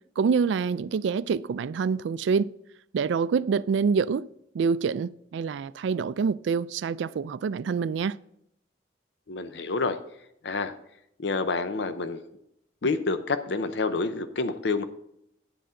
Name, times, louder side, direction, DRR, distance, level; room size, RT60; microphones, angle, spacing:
voice 1, 0.2-2.5 2.9-4.3 4.5-8.2, right 5 dB, 75° right, 0.3 m, -26 dB
voice 2, 9.3-10.0 10.4-10.7 11.2-12.2 12.8-14.8, left 3 dB, 70° left, 0.6 m, -28 dB
10.0 x 7.9 x 3.7 m
head